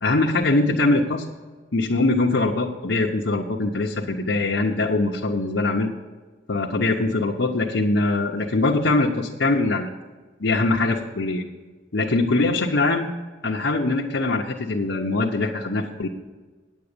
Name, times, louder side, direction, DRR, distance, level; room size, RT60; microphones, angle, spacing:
voice 1, 0.0-1.3 1.7-5.9 6.5-9.9 10.4-11.4 11.9-13.1 13.4-16.1, left 2 dB, 70° left, -2 dB, 0.9 m, -22 dB
9.6 x 8.4 x 6.8 m, 1.3 s
head